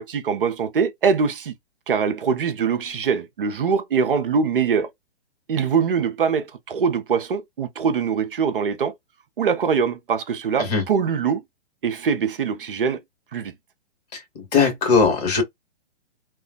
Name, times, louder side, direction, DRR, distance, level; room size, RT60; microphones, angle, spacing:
voice 1, 0.0-1.5 1.9-4.9 5.5-8.9 9.4-11.4 11.8-13.0 13.3-13.5, right 6 dB, 60° right, 0.6 m, -23 dB
voice 2, 14.5-15.4, left 5 dB, 40° left, 1.6 m, -18 dB
2.9 x 2.3 x 2.3 m
figure-of-eight pair, 120°, 31 cm